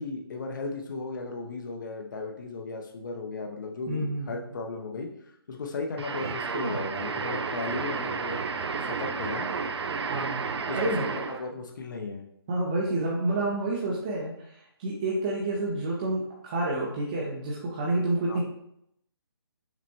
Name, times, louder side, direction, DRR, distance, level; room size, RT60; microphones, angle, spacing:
voice 1, 0.0-5.1 5.5-8.4 8.8-9.5 10.7-10.8 11.1-12.2 18.3-18.4, left 3 dB, 50° left, 2 dB, 0.6 m, -35 dB
voice 2, 3.9-4.4 10.1-10.4 10.7-11.1 12.5-18.4, right 2 dB, 20° right, -4 dB, 0.4 m, -29 dB
sound 1, 6.0-11.5, right 5 dB, 90° right, 0.4 m, -32 dB
6.0 x 2.1 x 2.8 m, 0.75 s
hypercardioid pair, 160°, 13 cm